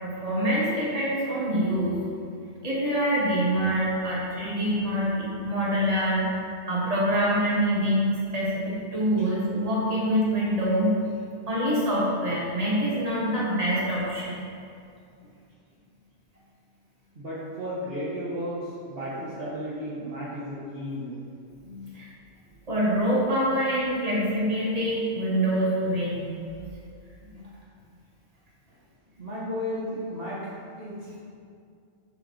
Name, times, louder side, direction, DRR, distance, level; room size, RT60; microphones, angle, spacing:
voice 1, 0.0-1.9 2.6-11.0 11.5-14.4 21.6-22.1 22.7-26.2 27.3-27.4, equal, 35° right, -7 dB, 1.7 m, -25 dB
voice 2, 17.1-21.2 29.2-30.4 30.8-31.2, equal, 60° right, -8 dB, 1.3 m, -34 dB
7.1 x 6.5 x 3.2 m, 2.4 s
omnidirectional pair, 1.1 m